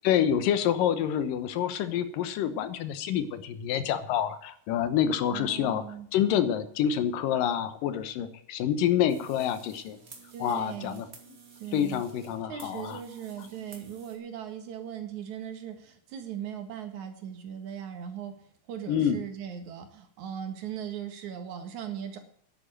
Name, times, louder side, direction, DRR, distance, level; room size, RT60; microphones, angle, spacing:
voice 1, 0.0-5.8 6.1-10.0 10.4-11.1 11.7-13.0 18.9-19.2, left 9 dB, 90° left, 12 dB, 2.8 m, -27 dB
voice 2, 5.3-6.1 10.3-11.0 11.6-12.0 12.5-18.4 18.7-22.2, right 9 dB, 65° right, 6 dB, 3.0 m, -39 dB
sound 1, 9.1-14.2, right 5 dB, 30° right, 2.0 m, -52 dB
11.0 x 9.2 x 7.5 m, 0.64 s
omnidirectional pair, 3.8 m